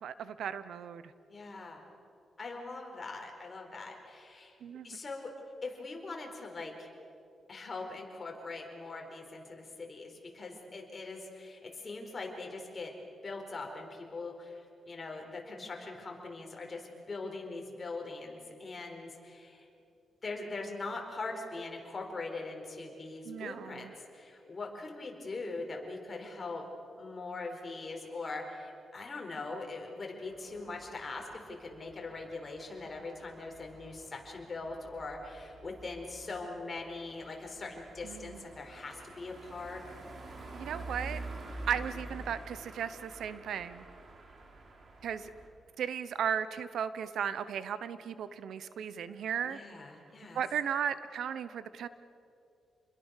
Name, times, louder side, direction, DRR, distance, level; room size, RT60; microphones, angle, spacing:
voice 1, 0.0-1.0 4.6-5.0 23.2-23.9 38.0-38.4 40.5-41.2 41.7-43.8 45.0-45.3 45.8-49.6 50.3-51.9, right 8 dB, 85° right, 14 dB, 0.9 m, -36 dB
voice 2, 1.3-1.8 2.4-4.6 4.8-5.3 5.6-6.9 7.5-12.9 13.2-19.7 20.2-23.9 24.1-26.6 27.0-39.8 49.4-50.4, left 3 dB, 35° left, 1 dB, 4.5 m, -42 dB
sound 1, 30.2-45.5, right 2 dB, 50° right, 3.3 m, -48 dB
28.5 x 21.5 x 6.6 m, 2.6 s
cardioid pair, 110°, 0 cm